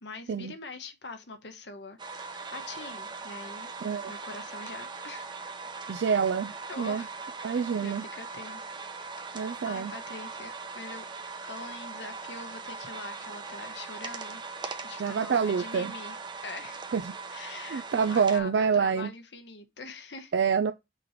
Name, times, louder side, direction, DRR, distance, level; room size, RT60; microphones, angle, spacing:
voice 1, 0.0-3.7 4.1-5.3 6.7-8.8 9.3-14.4 14.8-16.2 16.4-16.8 17.3-20.3, left 3 dB, 70° left, 1.1 m, -44 dB
sound 1, 2.0-18.4, right 4 dB, 25° right, 0.8 m, -40 dB
voice 2, 3.8-4.1 5.9-7.0 7.4-8.0 9.3-9.9 15.0-15.9 16.9-17.1 17.7-19.1 20.3-20.7, right 6 dB, 75° right, 0.4 m, -27 dB
6.1 x 3.1 x 5.6 m
head